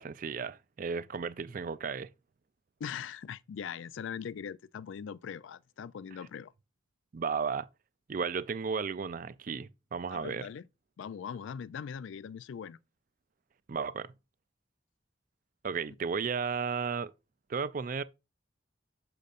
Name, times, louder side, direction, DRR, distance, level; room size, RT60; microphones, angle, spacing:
voice 1, 0.0-2.1 7.1-7.7 8.1-10.5 13.7-14.1 15.6-17.1 17.5-18.0, right 5 dB, 40° right, 0.3 m, -34 dB
voice 2, 2.8-6.5 10.1-10.7 11.0-12.8, left 7 dB, 70° left, 0.3 m, -41 dB
6.7 x 6.4 x 2.5 m
head